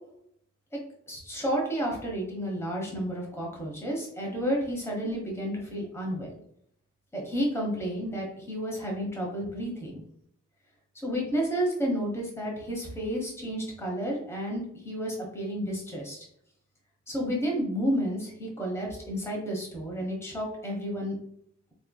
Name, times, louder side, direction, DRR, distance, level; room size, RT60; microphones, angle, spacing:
voice 1, 1.1-6.4 7.1-10.0 11.0-16.2 17.1-21.2, equal, 15° left, -1 dB, 1.2 m, -31 dB
4.2 x 3.3 x 2.3 m, 0.71 s
head